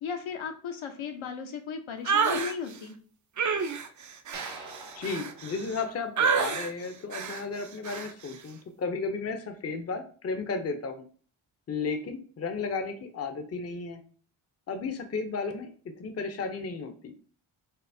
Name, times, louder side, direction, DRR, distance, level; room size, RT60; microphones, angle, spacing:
voice 1, 0.0-3.0, left 6 dB, 70° left, 5 dB, 0.8 m, -36 dB
sound 1, 2.1-2.5 3.4-5.8 6.2-6.7 7.1-7.4 7.8-8.1, right 6 dB, 40° right, 0.5 m, -28 dB
sound 2, 4.3-6.7, right 3 dB, 65° right, 1.3 m, -46 dB
voice 2, 5.0-11.1 11.7-14.0 14.7-17.1, left 4 dB, 30° left, 6 dB, 0.6 m, -34 dB
5.4 x 2.0 x 2.6 m, 0.43 s
cardioid pair, 55°, 49 cm